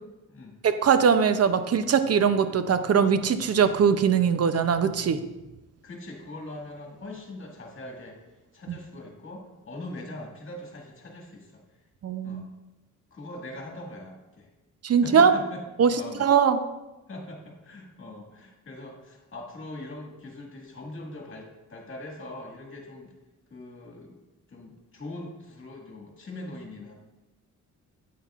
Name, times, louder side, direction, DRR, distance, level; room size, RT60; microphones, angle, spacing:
voice 1, 0.6-5.2 8.7-8.8 12.0-12.4 14.8-15.3 15.8-16.6, right 6 dB, 50° right, 10 dB, 0.6 m, -21 dB
voice 2, 5.8-8.2 8.5-11.6 12.2-12.5 13.1-14.5 15.0-15.6 15.9-16.3 17.1-23.1 23.5-24.2 24.5-26.9, left 2 dB, 40° left, 0 dB, 1.9 m, -41 dB
9.2 x 8.5 x 2.4 m, 1.0 s
wide cardioid pair, 120°, 32 cm